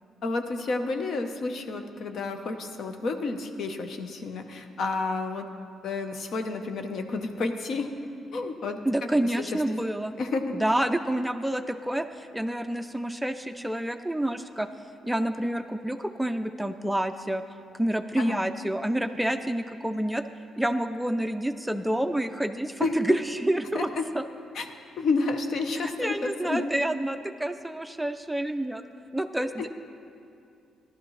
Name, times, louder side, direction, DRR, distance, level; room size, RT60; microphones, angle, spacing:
voice 1, 0.2-5.5 5.8-7.9 8.3-9.1 9.4-9.6 10.2-10.4 18.2-18.4 22.8-23.2 23.7-24.1 24.5-24.7 25.0-26.7 29.6-29.7, left 3 dB, 60° left, 6 dB, 0.8 m, -30 dB
voice 2, 8.9-10.1 10.5-14.7 15.0-17.4 17.8-20.2 20.6-23.9 24.1-24.2 25.8-28.8 29.1-29.7, right 1 dB, 5° right, 8 dB, 0.4 m, -28 dB
14.5 x 11.5 x 3.2 m, 2.5 s
cardioid pair, 90°, 0 cm